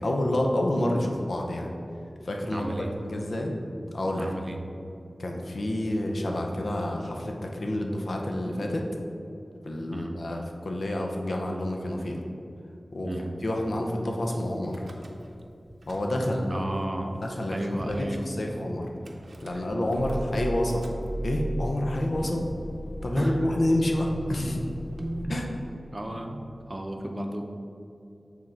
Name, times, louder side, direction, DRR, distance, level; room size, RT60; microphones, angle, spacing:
voice 1, 0.0-1.7 2.2-3.5 3.9-4.3 5.2-8.9 9.6-12.2 12.9-13.1 13.4-14.8 15.9-16.7 17.2-17.6 17.8-18.9 19.4-20.9 21.2-22.4 23.0-24.6 25.3-25.4, left 1 dB, 75° left, 1 dB, 0.7 m, -28 dB
voice 2, 2.5-2.9 4.2-4.6 9.9-10.2 13.0-13.3 16.5-17.2 17.5-18.6 19.5-19.6 22.2-22.4 23.1-23.4 25.0-25.4 25.9-27.4, right 1 dB, 40° right, 3 dB, 0.6 m, -33 dB
Car / Engine starting / Idling, 14.6-15.4 15.7-16.5 17.1-17.2 17.4-17.5 17.8-18.1 19.1-25.2, right 1 dB, 75° right, 0.6 m, -37 dB
6.2 x 3.7 x 4.5 m, 2.7 s
wide cardioid pair, 50°, 0 cm